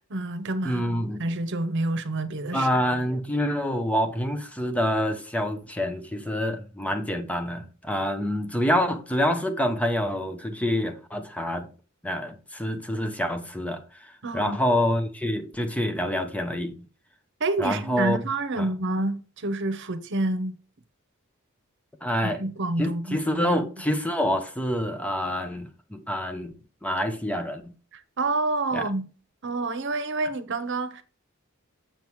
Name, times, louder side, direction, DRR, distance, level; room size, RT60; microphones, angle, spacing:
voice 1, 0.1-2.7 14.2-14.6 17.4-20.6 22.2-23.6 27.9-29.1 29.4-31.0, right 2 dB, 60° right, 1.0 m, -28 dB
voice 2, 0.6-1.2 2.5-11.7 12.0-16.7 17.6-18.2 18.6-18.7 22.0-22.4 22.8-26.5 26.8-27.7 28.7-28.9, equal, 5° left, 1.0 m, -27 dB
7.5 x 7.1 x 3.1 m
head